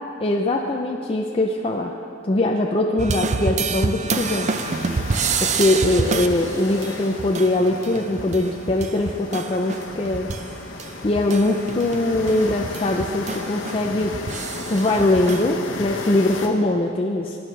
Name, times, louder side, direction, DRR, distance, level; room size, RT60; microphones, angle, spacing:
voice 1, 0.2-2.0 2.3-4.5 5.4-10.3 11.0-14.4 14.7-17.4, left 2 dB, 30° left, 1 dB, 0.5 m, -22 dB
sound 1, 3.0-10.5 10.8-15.4, right 4 dB, 35° right, 0.4 m, -28 dB
sound 2, 4.1-16.5, left 3 dB, 75° left, 1.1 m, -35 dB
20.0 x 9.4 x 3.3 m, 2.5 s
head